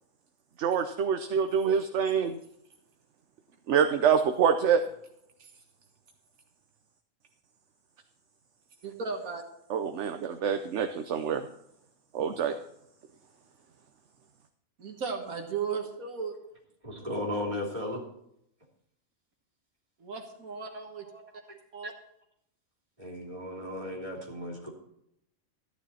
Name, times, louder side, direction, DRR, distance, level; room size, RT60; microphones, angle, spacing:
voice 1, 0.6-2.4 3.7-4.8 9.7-11.5 12.1-12.6, right 7 dB, 60° right, 7 dB, 1.0 m, -26 dB
voice 2, 8.8-9.4 14.8-16.4 20.0-21.1 21.7-21.9, right 5 dB, 75° right, 3 dB, 1.8 m, -35 dB
voice 3, 16.8-18.0 21.0-21.2 23.0-24.7, left 1 dB, 25° right, -1 dB, 3.2 m, -35 dB
14.0 x 10.0 x 4.2 m, 0.77 s
omnidirectional pair, 1.5 m